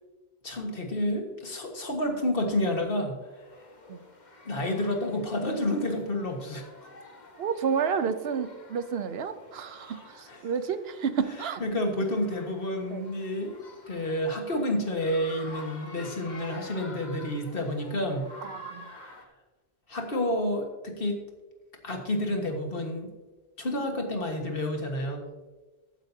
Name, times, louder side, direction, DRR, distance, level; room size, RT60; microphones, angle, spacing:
voice 1, 0.4-3.1 4.5-6.9 9.7-10.4 11.6-13.6 13.9-18.3 18.9-19.1 19.9-21.2 21.8-23.1 23.6-25.2, left 1 dB, 60° left, 3 dB, 1.9 m, -30 dB
sound 1, 3.2-19.3, left 2 dB, 45° left, 1.4 m, -49 dB
voice 2, 7.4-11.6 12.9-13.1 18.4-18.9, right 6 dB, 75° right, 11 dB, 0.9 m, -30 dB
15.0 x 9.0 x 2.8 m, 1.2 s
omnidirectional pair, 1.0 m